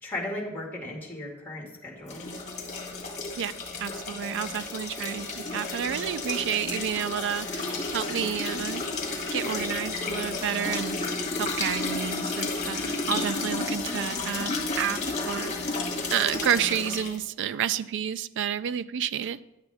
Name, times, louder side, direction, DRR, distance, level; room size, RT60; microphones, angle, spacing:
voice 1, 0.0-2.3, left 1 dB, 10° left, -3 dB, 2.1 m, -36 dB
sound 1, 2.1-17.2, left 3 dB, 35° left, 1.6 m, -32 dB
voice 2, 3.8-8.9 9.3-15.8 16.1-19.4, right 9 dB, 60° right, 15 dB, 0.3 m, -30 dB
10.5 x 7.9 x 3.5 m, 0.91 s
head